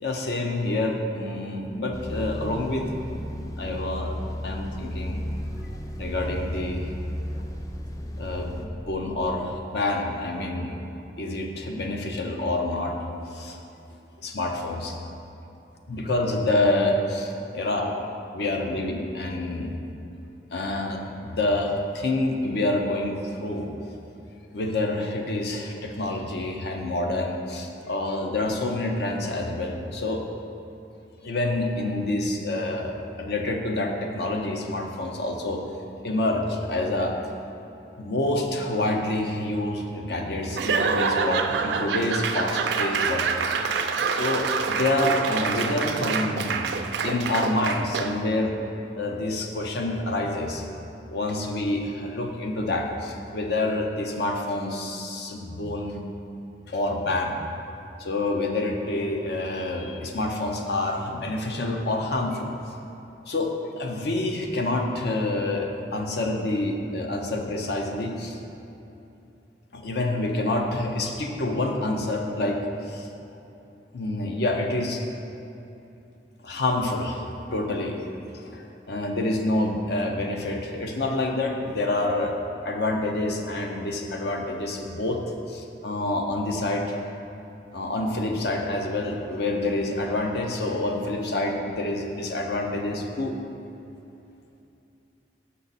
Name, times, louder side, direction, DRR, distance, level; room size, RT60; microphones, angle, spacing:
voice 1, 0.0-2.9 3.6-4.2 4.4-5.2 6.0-6.9 8.2-10.7 11.2-13.0 13.3-13.6 14.2-15.0 15.9-18.0 18.3-19.7 20.5-23.7 24.5-30.2 31.2-35.6 36.0-37.2 38.0-43.3 44.1-46.7 47.0-48.5 48.9-50.6 51.1-56.0 56.7-57.4 58.0-62.5 63.3-68.4 69.7-73.1 73.9-75.0 76.4-77.2 77.5-78.0 78.3-82.3 82.6-85.2 85.5-87.0 87.7-93.3, left 2 dB, 65° left, 2 dB, 0.7 m, -27 dB
sound 1, 1.9-8.7, equal, 20° left, 0.4 m, -34 dB
Laughter / Applause / Crowd, 40.5-48.3, right 5 dB, 70° right, 0.4 m, -26 dB
6.3 x 5.6 x 4.1 m, 2.8 s
head